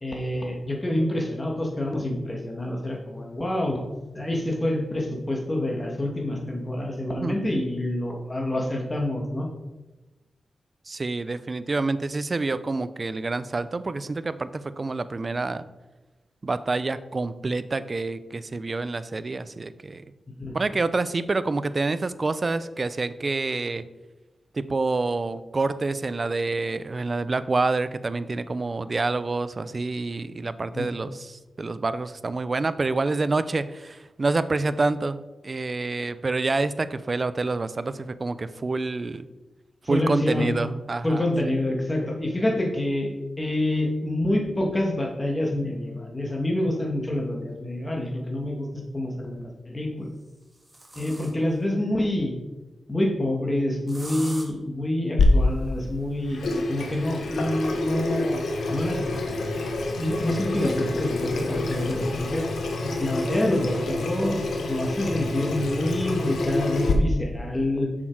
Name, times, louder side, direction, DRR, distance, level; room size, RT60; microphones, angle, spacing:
voice 1, 0.0-3.8 4.1-9.5 20.4-20.5 30.7-30.9 39.9-40.7 41.0-48.7 48.9-50.1 50.9-52.3 52.9-56.4 56.7-58.4 58.7-59.1 60.0-62.5 63.0-64.4 64.7-67.9, left 1 dB, 20° left, 1 dB, 1.8 m, -27 dB
voice 2, 10.9-15.7 16.4-20.0 20.5-23.8 24.5-35.2 35.4-39.3 39.9-41.2, right 3 dB, 40° right, 14 dB, 0.5 m, -27 dB
sound 1, 47.5-47.6 49.0-49.5 50.0-51.6 53.9-54.5 57.1-59.7 60.7-62.0 62.5-62.6 63.0-63.1 63.7-63.8 64.2-64.6, right 1 dB, 15° right, 1.7 m, -47 dB
Water tap faucet / Sink (filling or washing), 55.2-66.9, left 2 dB, 85° left, 1.1 m, -27 dB
7.3 x 6.2 x 4.7 m, 1.1 s
cardioid pair, 85°, 0 cm